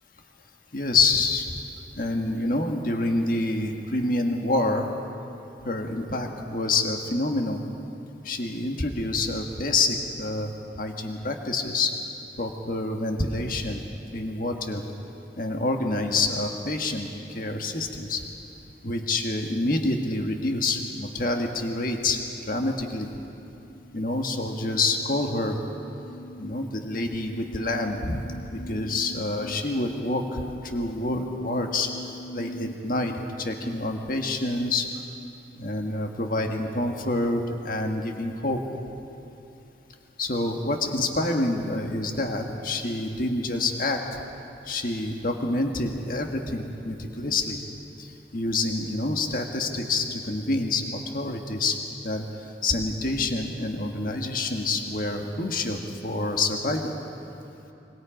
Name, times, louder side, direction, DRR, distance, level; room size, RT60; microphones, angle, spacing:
voice 1, 0.7-1.6 2.0-4.9 5.6-7.6 8.3-10.5 10.8-11.9 12.4-13.8 14.1-14.8 15.4-18.2 18.8-23.1 23.9-25.6 26.4-28.2 28.5-31.9 32.3-34.9 35.6-38.6 40.2-44.2 44.7-47.6 48.0-51.8 52.0-52.2 52.6-57.0, left 2 dB, 50° left, 3 dB, 1.7 m, -27 dB
sound 1, 23.5-32.7, equal, 70° left, 1.2 m, -41 dB
25.5 x 24.5 x 5.2 m, 2.9 s
head